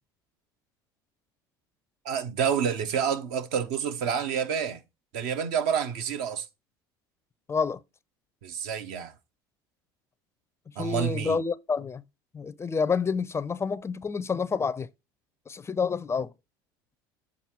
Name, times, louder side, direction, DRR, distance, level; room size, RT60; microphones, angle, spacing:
voice 1, 2.0-4.8 5.1-6.4 8.4-9.1 10.8-11.4, right 7 dB, 70° right, 0.9 m, -28 dB
voice 2, 7.5-7.8 10.8-12.0 12.3-14.9 15.5-16.3, left 5 dB, 25° left, 0.4 m, -28 dB
7.4 x 3.8 x 4.5 m
hypercardioid pair, 80°, 12 cm